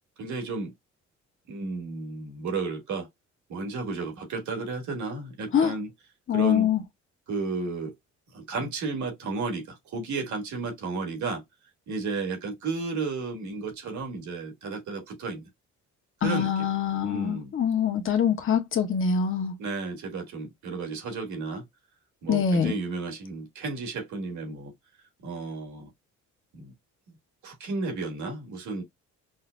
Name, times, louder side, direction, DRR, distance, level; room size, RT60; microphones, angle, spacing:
voice 1, 0.2-0.7 1.5-3.1 3.5-5.9 6.3-6.7 7.3-7.9 8.3-11.4 11.9-15.5 16.2-16.7 17.0-17.5 19.6-21.6 22.2-24.7 25.2-25.9 26.5-26.7 27.4-28.8, right 4 dB, 75° right, 1.5 m, -33 dB
voice 2, 6.3-6.8 16.2-19.5 22.3-22.8, left 7 dB, 45° left, 1.0 m, -24 dB
5.6 x 2.0 x 2.3 m
cardioid pair, 90°, 30 cm